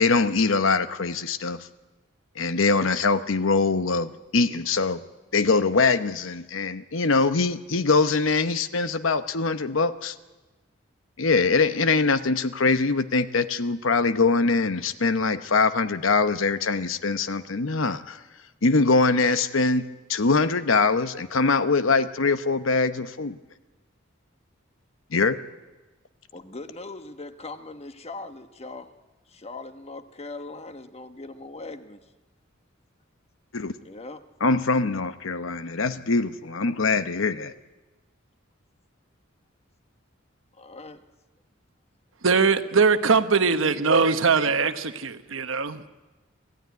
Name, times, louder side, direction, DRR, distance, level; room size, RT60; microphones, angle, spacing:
voice 1, 0.0-1.6 2.4-5.0 5.3-10.1 11.2-18.2 18.6-19.8 20.1-23.4 25.1-25.4 33.5-33.7 34.4-37.5, left 4 dB, 75° left, 12 dB, 0.9 m, -23 dB
voice 2, 26.3-28.9 29.3-32.0 33.8-34.2 40.5-41.0, left 3 dB, 30° left, 9 dB, 1.2 m, -40 dB
voice 3, 42.2-45.9, right 5 dB, 75° right, 10 dB, 1.1 m, -21 dB
25.5 x 15.0 x 9.4 m, 1.2 s
head